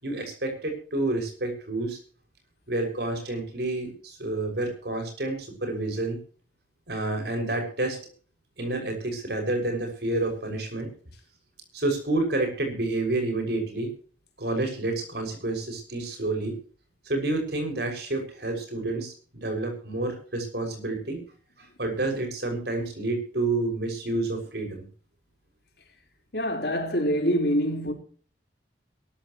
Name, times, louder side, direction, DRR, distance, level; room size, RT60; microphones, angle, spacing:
voice 1, 0.0-2.0 2.7-6.2 6.9-8.0 8.6-10.9 11.7-13.9 14.4-16.5 17.0-21.2 21.8-24.8, right 2 dB, 60° right, 6.4 m, -29 dB
voice 2, 26.3-27.9, equal, 60° left, 4.4 m, -25 dB
22.5 x 13.5 x 3.1 m
head